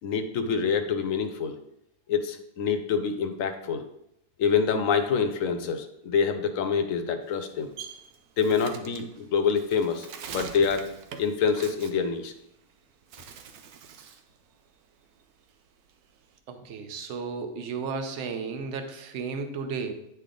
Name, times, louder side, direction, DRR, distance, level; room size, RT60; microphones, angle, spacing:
voice 1, 0.0-1.6 2.1-3.8 4.4-7.7 8.4-10.1 10.3-10.9 11.2-12.3, left 6 dB, 70° left, 8 dB, 1.0 m, -26 dB
Bird, 7.2-12.7 13.0-14.3 14.7-16.4, right 7 dB, 85° right, 1.1 m, -44 dB
voice 2, 16.5-19.9, right 5 dB, 60° right, 7 dB, 1.0 m, -34 dB
9.4 x 3.3 x 3.8 m, 0.78 s
omnidirectional pair, 1.5 m